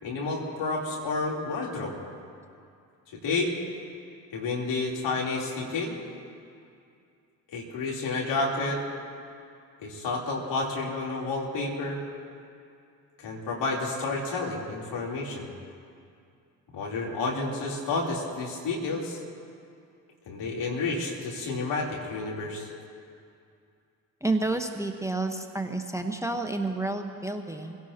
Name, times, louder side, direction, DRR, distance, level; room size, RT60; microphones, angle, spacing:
voice 1, 0.0-2.0 3.1-3.6 4.3-6.0 7.5-8.8 9.8-12.0 13.2-15.5 16.7-19.2 20.3-22.7, left 3 dB, 60° left, -3 dB, 3.7 m, -30 dB
voice 2, 24.2-27.8, right 2 dB, 5° right, 6 dB, 1.2 m, -30 dB
27.5 x 17.0 x 3.0 m, 2.5 s
hypercardioid pair, 45°, 47 cm